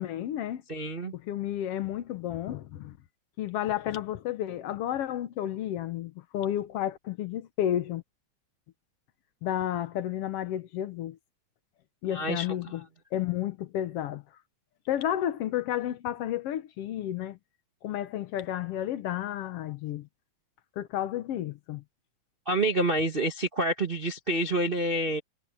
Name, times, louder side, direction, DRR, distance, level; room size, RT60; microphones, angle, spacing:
voice 1, 0.0-0.6 1.1-3.0 3.4-8.0 9.4-11.2 12.0-12.8 13.1-14.2 14.9-17.4 17.8-20.1 20.8-21.8, left 11 dB, 75° left, 1.4 m, -31 dB
voice 2, 0.7-1.1 12.1-12.5 22.5-25.2, right 1 dB, 75° right, 0.5 m, -27 dB
omnidirectional pair, 3.8 m